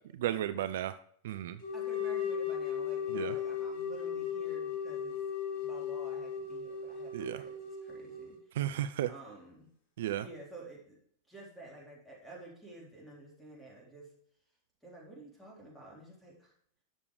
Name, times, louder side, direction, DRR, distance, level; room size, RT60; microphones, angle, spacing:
voice 1, 0.1-1.0 1.2-1.6 3.1-3.3 7.1-7.4 8.5-9.1 10.0-10.3, right 12 dB, 55° right, 12 dB, 0.4 m, -33 dB
sound 1, 1.6-8.4, left 7 dB, 40° left, 2.9 m, -36 dB
voice 2, 1.7-5.2 5.5-8.6 9.1-9.7 10.2-11.0 11.3-14.1 14.8-16.5, right 2 dB, 5° left, -4 dB, 3.9 m, -51 dB
11.5 x 6.9 x 3.2 m, 0.62 s
figure-of-eight pair, 90°, 0 cm